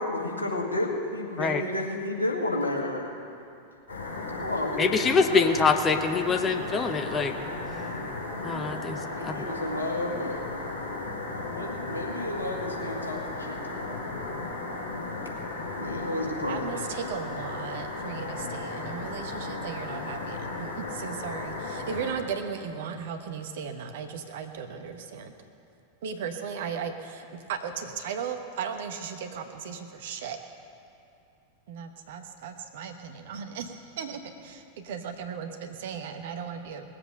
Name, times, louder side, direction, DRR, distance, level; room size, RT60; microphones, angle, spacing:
voice 1, 0.0-3.1 4.3-5.0 5.3-5.5 7.8-8.2 9.1-10.4 11.2-13.8 15.8-16.6, left 1 dB, 80° left, -1 dB, 1.9 m, -32 dB
sound 1, 3.9-22.1, left 2 dB, 65° left, 4.1 m, -35 dB
voice 2, 4.8-7.3 8.4-9.5, left 5 dB, 20° left, 7 dB, 0.9 m, -25 dB
voice 3, 16.5-25.3 26.0-30.4 31.7-36.8, right 6 dB, 55° right, 6 dB, 1.2 m, -36 dB
19.0 x 7.7 x 6.5 m, 2.6 s
figure-of-eight pair, 90°, 0 cm